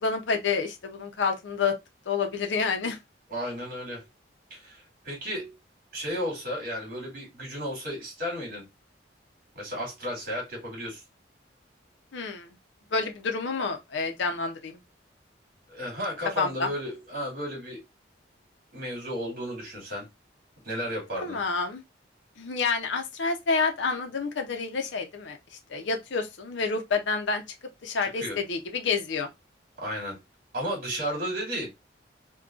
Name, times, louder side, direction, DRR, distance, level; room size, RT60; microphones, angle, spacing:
voice 1, 0.0-1.8 2.1-3.0 12.1-12.5 12.9-14.8 16.4-16.7 21.2-21.8 22.4-25.4 25.7-27.4 27.8-29.3, left 4 dB, 75° left, 0.6 m, -28 dB
voice 2, 3.3-4.1 4.5-5.5 5.9-8.6 9.5-11.0 15.7-17.8 18.7-20.1 20.6-21.4 28.0-28.4 29.8-30.2 30.5-31.7, equal, 50° right, 2.0 m, -33 dB
3.7 x 2.2 x 2.4 m
head